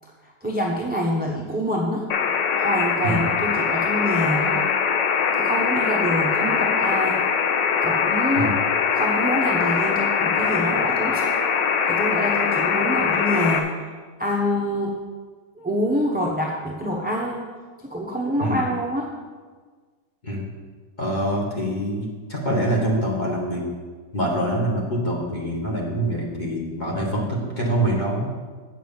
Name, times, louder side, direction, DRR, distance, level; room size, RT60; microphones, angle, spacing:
voice 1, 0.4-2.1 2.6-4.7 5.3-7.2 7.8-8.5 8.9-11.3 11.9-13.7 14.2-14.9 15.6-17.4 17.9-19.1, equal, 10° right, -1 dB, 0.6 m, -26 dB
sound 1, 2.1-13.6, left 6 dB, 85° left, 1.5 m, -22 dB
voice 2, 21.0-23.6 24.1-28.3, right 1 dB, 25° left, -3 dB, 1.9 m, -25 dB
8.4 x 6.1 x 7.2 m, 1.5 s
omnidirectional pair, 1.9 m